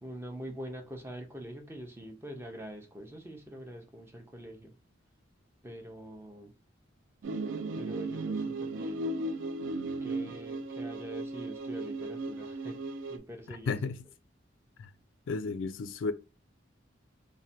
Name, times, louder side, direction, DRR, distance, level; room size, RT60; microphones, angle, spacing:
voice 1, 0.0-4.7 5.6-6.5 7.8-9.1 10.0-12.8 13.1-13.9, equal, 15° right, 0.5 m, -44 dB
sound 1, 7.2-13.2, right 2 dB, 85° right, 0.3 m, -36 dB
voice 2, 13.7-14.0 14.8-14.9 15.3-16.1, left 4 dB, 80° left, 0.3 m, -32 dB
3.1 x 2.1 x 2.7 m
head